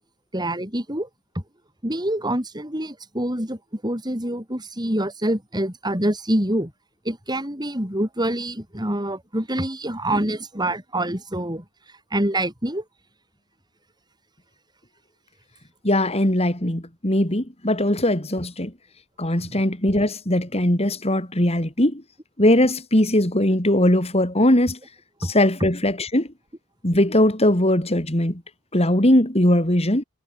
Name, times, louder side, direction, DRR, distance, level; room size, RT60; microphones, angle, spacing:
voice 1, 0.3-1.1 1.3-1.4 1.8-6.7 7.1-11.6 12.1-12.8 19.4-19.6 25.2-25.3, right 1 dB, 20° right, 7.4 m, -26 dB
voice 2, 15.8-18.7 19.2-22.0 22.4-24.8 25.2-26.3 26.8-28.4 28.7-30.0, left 1 dB, 30° left, 3.5 m, -20 dB
head